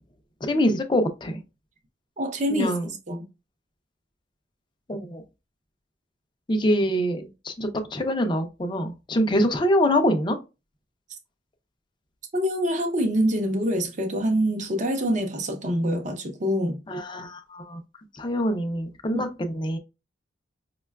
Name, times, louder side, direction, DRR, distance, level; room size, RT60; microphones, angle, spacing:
voice 1, 0.4-1.4 2.5-2.9 4.9-5.2 6.5-10.4 16.9-17.8 18.2-19.8, equal, 25° left, 0.4 m, -25 dB
voice 2, 2.2-2.7 3.1-3.2 12.3-16.8 19.1-19.2, equal, 40° right, 0.6 m, -25 dB
5.2 x 2.2 x 2.2 m
head